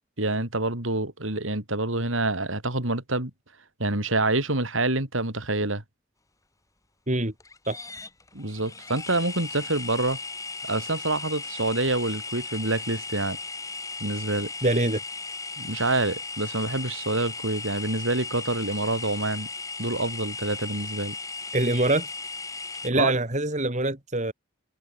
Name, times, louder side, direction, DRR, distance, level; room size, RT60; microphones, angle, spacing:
voice 1, 0.2-3.3 3.8-5.8 8.3-10.2 10.6-13.4 14.0-14.5 15.6-19.5 19.8-21.2 22.9-23.1, right 2 dB, 75° right, 4.5 m, -27 dB
sound 1, 7.4-22.9, left 4 dB, 15° left, 2.3 m, -37 dB
voice 2, 14.6-15.0 21.5-22.1 22.8-24.3, right 2 dB, 35° right, 3.5 m, -24 dB
head